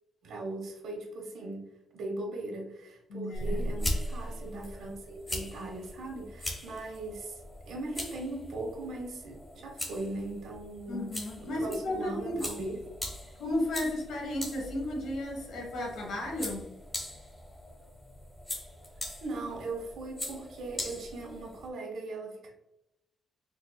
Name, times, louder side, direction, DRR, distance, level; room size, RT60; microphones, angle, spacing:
voice 1, 0.2-1.7 1.9-11.1 11.4-12.8 19.2-22.5, right 2 dB, 80° right, 1 dB, 1.2 m, -39 dB
voice 2, 3.1-3.7 10.9-12.4 13.4-16.7, left 1 dB, 85° left, -1 dB, 1.3 m, -34 dB
sound 1, 3.3-21.7, equal, 15° left, 0.9 m, -40 dB
4.5 x 2.9 x 2.3 m, 0.85 s
cardioid pair, 140°, 0 cm